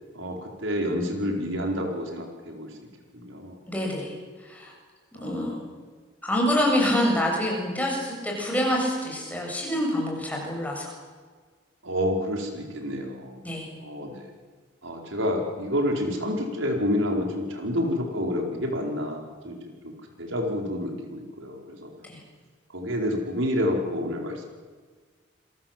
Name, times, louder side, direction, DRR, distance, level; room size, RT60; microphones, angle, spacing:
voice 1, 0.1-2.7 3.1-3.6 5.2-5.6 11.8-13.4 13.8-14.2 14.8-19.6 19.8-21.9 22.7-24.4, equal, 80° right, 2 dB, 4.8 m, -29 dB
voice 2, 3.7-4.1 4.4-4.7 5.2-5.5 6.2-10.9 13.4-13.7 22.0-22.2, left 1 dB, 10° left, -1 dB, 7.0 m, -26 dB
28.5 x 23.0 x 7.6 m, 1.5 s
head